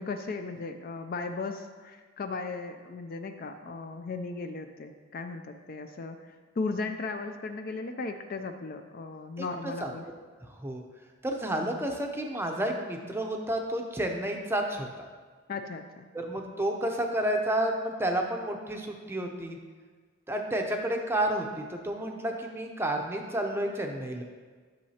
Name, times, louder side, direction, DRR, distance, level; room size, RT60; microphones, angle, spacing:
voice 1, 0.0-10.0 15.5-16.1, left 3 dB, 40° left, 7 dB, 0.4 m, -36 dB
voice 2, 9.4-9.9 10.6-10.8 11.2-14.9 16.1-19.6 20.3-24.2, right 1 dB, 10° right, 2 dB, 0.6 m, -30 dB
11.5 x 6.4 x 2.8 m, 1.5 s
head